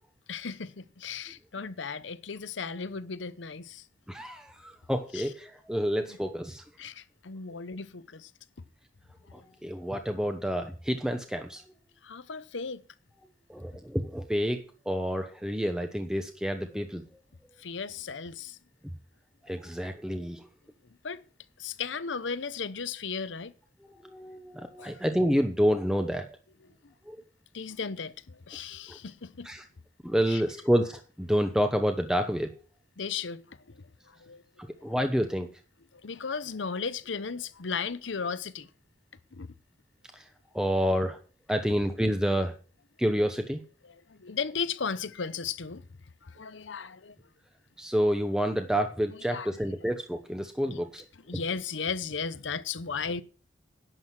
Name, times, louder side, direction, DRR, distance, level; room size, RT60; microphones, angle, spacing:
voice 1, 0.3-3.9 5.1-5.3 6.8-8.3 9.3-9.5 12.0-12.8 17.6-18.6 20.8-21.2 21.6-23.5 24.8-25.0 26.8-26.9 27.5-29.5 30.3-30.4 33.0-34.9 35.9-38.7 39.3-39.5 43.8-45.9 46.2-47.2 49.1-49.5 50.7-50.8 51.3-53.2, left 5 dB, 85° left, 0.8 m, -36 dB
voice 2, 4.1-6.6 9.3-11.6 13.5-17.0 19.4-20.5 23.9-26.3 27.1-27.2 28.9-29.0 29.4-29.6 30.0-32.5 34.6-35.5 40.1-40.3 40.5-41.2 41.5-42.6 43.0-43.6 47.8-51.0, equal, 5° right, 0.9 m, -28 dB
11.5 x 7.6 x 6.2 m
head